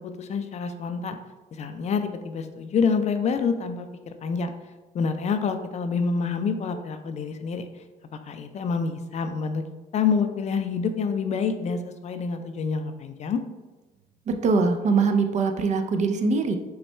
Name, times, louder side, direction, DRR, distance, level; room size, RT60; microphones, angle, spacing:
voice 1, 0.2-1.2 1.5-4.5 4.9-7.7 8.3-9.6 9.9-13.4, left 5 dB, 40° left, 8 dB, 0.4 m, -27 dB
voice 2, 14.3-16.6, right 4 dB, 45° right, 6 dB, 0.5 m, -22 dB
5.4 x 2.2 x 4.3 m, 1.2 s
cardioid pair, 110°, 17 cm